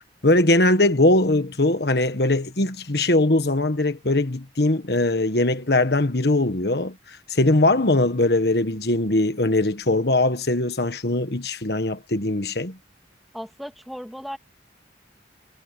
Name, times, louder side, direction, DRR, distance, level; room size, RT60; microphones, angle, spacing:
voice 1, 0.2-12.8, left 2 dB, 60° left, 1.5 m, -21 dB
voice 2, 13.3-14.4, equal, ahead, 2.2 m, -36 dB
head